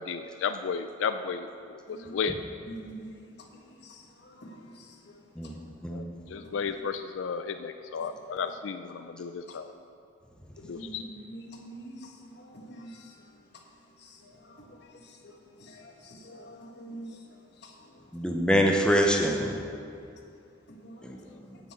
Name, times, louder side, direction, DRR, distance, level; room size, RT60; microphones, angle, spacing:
voice 1, 0.0-1.5 1.9-2.3 5.9-6.0 6.3-9.7 10.7-11.0, left 6 dB, 90° left, 9 dB, 0.4 m, -33 dB
voice 2, 2.7-3.1 3.8-4.9 6.3-6.5 9.5-9.6 10.6-12.1 12.4-13.1 14.0-15.0 15.2-15.3 15.6-17.1 17.6-17.7 20.7-21.0, right 1 dB, 60° left, 1 dB, 1.3 m, -46 dB
voice 3, 18.1-19.6 21.0-21.6, equal, 5° left, 1 dB, 0.7 m, -25 dB
9.2 x 6.1 x 7.9 m, 2.5 s
head